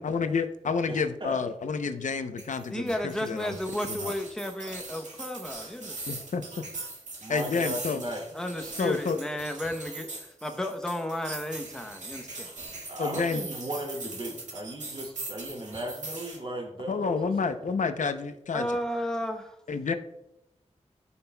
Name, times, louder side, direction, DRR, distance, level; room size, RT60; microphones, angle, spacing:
voice 1, 0.0-3.6 3.9-4.1 6.1-6.7 7.3-8.0 8.8-9.2 13.0-13.4 16.9-18.7 19.7-19.9, left 5 dB, 85° left, 9 dB, 0.6 m, -29 dB
voice 2, 0.9-1.4 7.2-8.2 12.9-17.3, right 1 dB, 40° right, -1 dB, 2.5 m, -36 dB
sound 1, 2.4-16.4, right 3 dB, 75° right, 1.8 m, -41 dB
voice 3, 2.7-6.3 8.3-12.5 18.5-19.6, left 1 dB, 5° left, 5 dB, 0.8 m, -33 dB
15.0 x 5.6 x 2.3 m, 0.89 s
wide cardioid pair, 80°, 12 cm